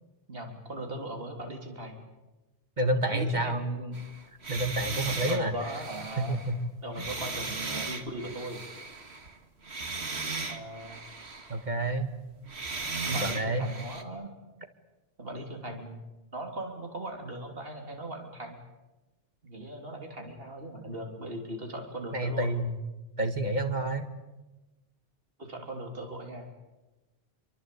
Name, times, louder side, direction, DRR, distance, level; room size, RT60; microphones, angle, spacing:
voice 1, 0.3-2.0 3.1-4.0 5.3-6.4 6.8-8.6 10.5-11.0 13.1-14.3 15.2-16.0 16.3-18.6 19.4-22.5 25.4-26.5, right 1 dB, 65° right, 3 dB, 3.5 m, -39 dB
voice 2, 2.8-3.7 4.5-5.5 6.2-6.6 7.0-7.1 11.5-12.1 13.1-13.7 22.1-22.8 23.2-24.1, right 1 dB, 45° right, 7 dB, 2.0 m, -29 dB
sound 1, 3.9-9.4 9.6-11.7 12.5-14.0, right 3 dB, 85° right, 2.2 m, -37 dB
26.0 x 24.5 x 8.4 m, 1.1 s
omnidirectional pair, 1.1 m